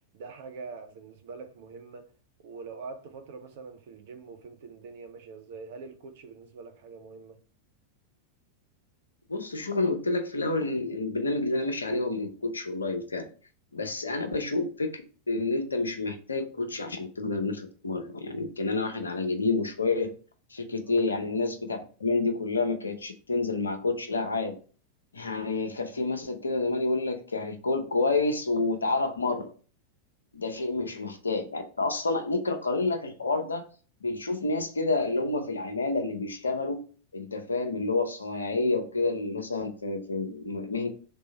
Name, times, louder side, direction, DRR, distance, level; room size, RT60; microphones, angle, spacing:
voice 1, 0.1-2.1 2.4-7.4 14.1-14.2 20.9-21.0, right 4 dB, 55° right, 0.6 m, -44 dB
voice 2, 9.3-13.3 13.7-15.0 15.3-20.1 20.5-24.5 25.1-29.5 30.3-33.6 34.0-36.8 37.1-40.9, left 3 dB, 75° left, 0.6 m, -29 dB
3.3 x 2.7 x 4.1 m
figure-of-eight pair, 90°, 0 cm